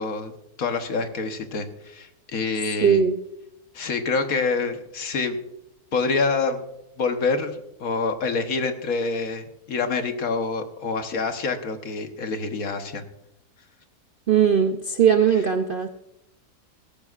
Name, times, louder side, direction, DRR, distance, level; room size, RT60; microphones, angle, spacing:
voice 1, 0.0-3.0 3.7-5.4 5.9-6.6 7.0-13.0, left 4 dB, 65° left, 7 dB, 1.5 m, -26 dB
voice 2, 2.8-3.2 14.3-15.9, right 7 dB, 60° right, 8 dB, 0.5 m, -19 dB
17.0 x 14.0 x 2.5 m, 0.85 s
omnidirectional pair, 1.6 m